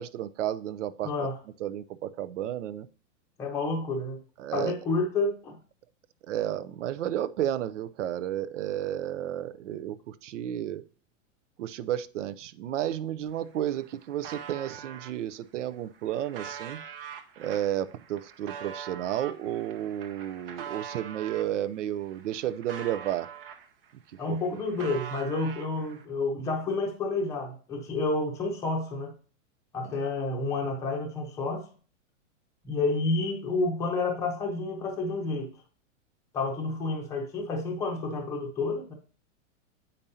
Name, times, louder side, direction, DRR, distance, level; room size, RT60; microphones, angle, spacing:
voice 1, 0.0-1.3 1.6-2.9 4.4-4.7 6.3-10.8 11.6-16.8 17.4-23.3 24.3-24.6 29.8-30.0, right 11 dB, 70° right, 0.7 m, -32 dB
voice 2, 1.0-1.4 3.4-4.2 4.5-5.6 24.2-29.1 29.7-31.6 32.6-35.5 36.3-38.9, left 3 dB, 10° left, 0.7 m, -30 dB
sound 1, 13.2-13.3 13.6-15.1 15.7-21.5 22.0-23.9 24.2-26.1, right 8 dB, 45° right, 0.9 m, -43 dB
8.6 x 5.3 x 2.7 m
supercardioid pair, 175°, 38 cm